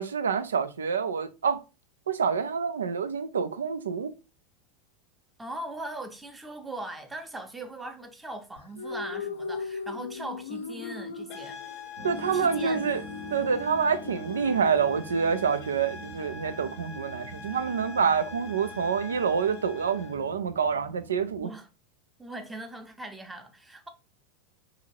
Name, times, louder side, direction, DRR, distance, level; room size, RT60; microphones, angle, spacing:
voice 1, 0.0-1.6 2.1-4.1 12.0-13.0 13.3-21.5, right 6 dB, 85° right, 0.3 m, -27 dB
voice 2, 5.4-11.6 12.3-12.9 21.4-21.7 22.2-23.9, right 2 dB, 10° right, 0.6 m, -40 dB
sound 1, 8.6-15.6, left 5 dB, 80° left, 0.3 m, -39 dB
sound 2, 11.3-20.2, left 4 dB, 55° left, 0.7 m, -44 dB
sound 3, 12.0-21.4, right 2 dB, 60° right, 0.8 m, -45 dB
2.7 x 2.5 x 3.0 m
hypercardioid pair, 95°, 0 cm